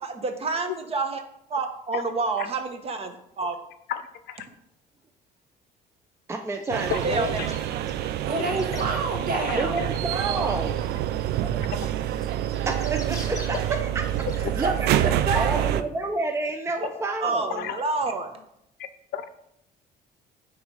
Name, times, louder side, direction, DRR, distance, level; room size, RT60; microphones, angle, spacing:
voice 1, 0.0-1.2 1.5-3.6 7.0-7.5 10.1-10.5 16.8-16.9 17.2-18.3, right 3 dB, 35° right, 6 dB, 1.0 m, -29 dB
voice 2, 3.9-4.5 6.9-7.0 7.4-7.5 8.3-8.4 8.7-8.8 9.3-9.6 14.4-14.5 17.6-17.8 18.8-19.3, left 11 dB, 70° left, 12 dB, 0.6 m, -33 dB
voice 3, 6.3-7.3 9.6-10.8 11.4-11.6 12.7-14.0 14.4-15.0 15.3-17.6, right 2 dB, 15° right, 5 dB, 0.5 m, -30 dB
sound 1, 6.5-8.9 9.6-14.4, left 3 dB, 20° left, 0.9 m, -46 dB
sound 2, 6.7-15.8, right 12 dB, 75° right, 0.4 m, -27 dB
voice 4, 8.3-9.8 14.5-15.9, right 3 dB, 60° right, 4 dB, 1.5 m, -29 dB
9.1 x 3.2 x 4.8 m, 0.79 s
cardioid pair, 110°, 17 cm